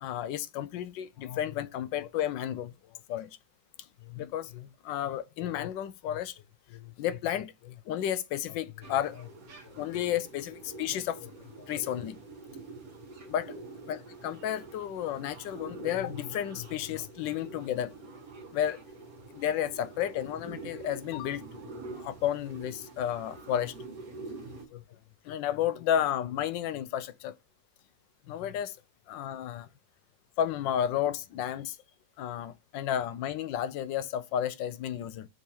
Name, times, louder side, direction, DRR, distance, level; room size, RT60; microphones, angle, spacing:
voice 1, 0.0-2.7 3.1-3.3 4.1-6.3 7.0-9.3 9.8-11.3 11.7-12.2 13.3-13.5 13.9-17.9 18.5-18.8 19.4-21.4 22.0-23.7 24.7-24.8 25.3-27.3 28.3-28.7 29.1-29.7 30.4-31.7 32.2-35.3, left 10 dB, 85° left, 1.3 m, -32 dB
sound 1, 8.8-24.7, right 3 dB, 55° right, 1.8 m, -46 dB
6.4 x 3.5 x 4.3 m
omnidirectional pair, 2.0 m